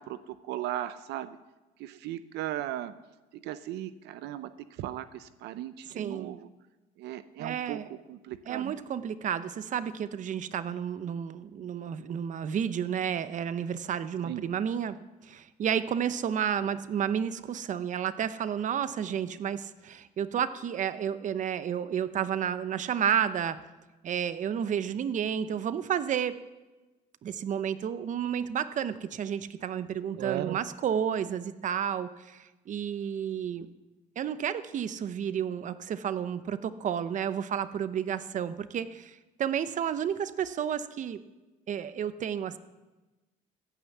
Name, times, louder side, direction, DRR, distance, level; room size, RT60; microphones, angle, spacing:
voice 1, 0.0-1.4 1.8-2.9 3.3-6.5 7.0-8.7 14.2-14.4 30.2-30.6, right 13 dB, 80° right, 13 dB, 0.6 m, -37 dB
voice 2, 5.9-6.4 7.4-7.8 8.5-15.0 15.2-23.6 24.0-26.4 27.2-33.7 34.2-41.2 41.7-42.6, right 8 dB, 50° right, 13 dB, 0.8 m, -31 dB
15.0 x 10.0 x 7.2 m, 1.2 s
cardioid pair, 110°, 17 cm